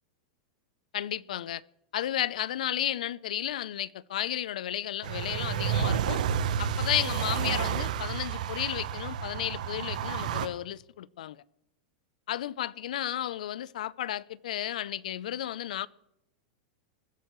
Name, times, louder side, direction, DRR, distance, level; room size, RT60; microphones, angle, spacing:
voice 1, 0.9-1.6 1.9-6.2 6.6-11.4 12.3-15.9, left 12 dB, 80° left, 0.5 m, -33 dB
sound 1, 5.0-10.5, right 8 dB, 75° right, 0.9 m, -30 dB
21.0 x 11.0 x 3.1 m
supercardioid pair, 135°, 4 cm